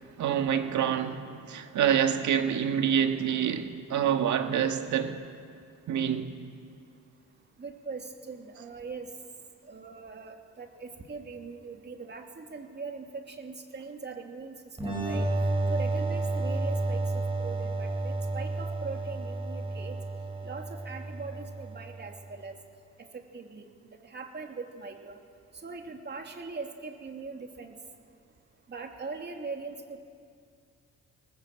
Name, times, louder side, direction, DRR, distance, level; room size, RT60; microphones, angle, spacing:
voice 1, 0.2-5.2 5.9-6.3, right 8 dB, 70° right, 1.9 m, -27 dB
voice 2, 7.6-9.1 9.6-14.6 14.8-15.3 15.7-20.0 20.4-22.5 23.1-23.6 24.0-25.2 25.6-27.7 28.7-30.0, right 4 dB, 35° right, 2.9 m, -41 dB
sound 1, 14.8-22.2, right 2 dB, 15° right, 7.7 m, -31 dB
23.0 x 19.5 x 7.8 m
cardioid pair, 90°, 30 cm